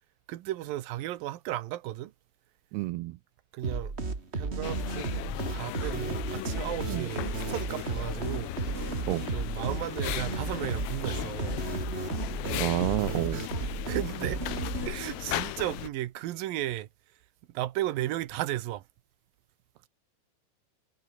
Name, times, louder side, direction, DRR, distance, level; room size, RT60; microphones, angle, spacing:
voice 1, 0.3-2.1 3.5-3.9 4.3-5.1 5.5-8.6 9.3-11.6 13.3-13.5 13.9-14.4 14.9-16.9 17.5-18.8, right 14 dB, 70° right, 2.3 m, -34 dB
voice 2, 2.7-3.2 6.9-7.1 9.1-9.3 12.5-13.4, right 19 dB, 85° right, 2.3 m, -29 dB
sound 1, 3.6-15.2, right 3 dB, 30° right, 1.2 m, -34 dB
sound 2, 4.6-15.9, left 18 dB, 80° left, 2.2 m, -37 dB
omnidirectional pair, 5.3 m